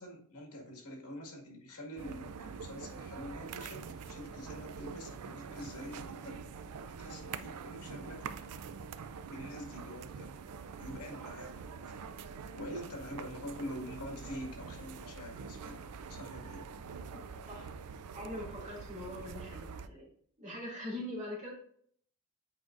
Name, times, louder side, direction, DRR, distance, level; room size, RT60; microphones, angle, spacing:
voice 1, 0.0-6.4 7.0-8.3 9.2-10.3 10.8-11.7 12.6-15.8 16.1-16.7, equal, 80° left, 0 dB, 1.8 m, -45 dB
sound 1, 2.0-19.9, right 5 dB, 80° right, 0.4 m, -45 dB
voice 2, 17.1-17.7 18.1-20.1 20.4-21.5, left 1 dB, 35° right, -5 dB, 2.6 m, -42 dB
8.4 x 4.8 x 2.5 m, 0.62 s
head